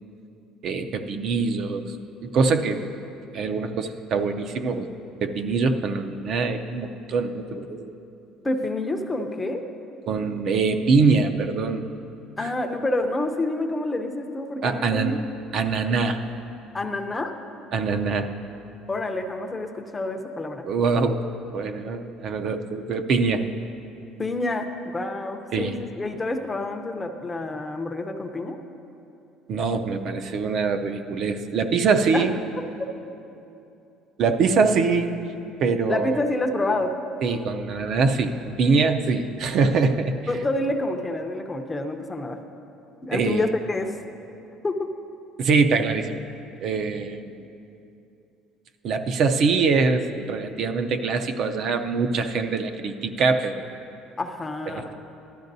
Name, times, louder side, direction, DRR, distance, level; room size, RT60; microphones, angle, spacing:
voice 1, 0.6-2.0 2.2-2.8 3.3-4.9 5.2-7.9 10.1-11.8 12.4-12.5 14.6-15.1 15.5-16.2 17.7-18.3 20.7-21.2 21.5-23.4 25.5-25.8 29.5-32.3 34.2-35.2 35.6-36.2 37.2-40.1 43.1-43.5 45.4-46.2 46.6-47.3 48.8-53.7 54.7-54.9, right 4 dB, 50° right, 7 dB, 0.5 m, -23 dB
voice 2, 8.4-9.6 12.4-15.2 16.7-17.3 18.9-20.7 24.2-28.6 32.1-32.3 32.6-32.7 35.9-36.9 40.3-42.4 43.0-43.9 44.6-44.9 54.2-54.8, left 2 dB, 15° left, 5 dB, 0.5 m, -28 dB
14.0 x 12.0 x 2.7 m, 2.7 s
cardioid pair, 145°, 0 cm